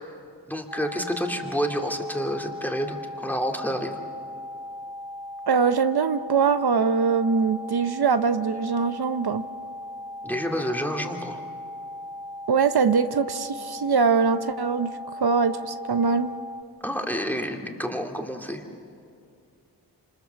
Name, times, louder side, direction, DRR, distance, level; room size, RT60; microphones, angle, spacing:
voice 1, 0.5-4.0 10.2-11.4 16.8-18.7, equal, 5° left, 2 dB, 2.5 m, -29 dB
sound 1, 0.7-16.6, left 1 dB, 65° left, 1.2 m, -38 dB
voice 2, 5.5-9.4 12.5-14.9 15.2-16.3, right 5 dB, 75° right, 9 dB, 0.8 m, -22 dB
28.0 x 26.5 x 7.0 m, 2.4 s
wide cardioid pair, 70°, 38 cm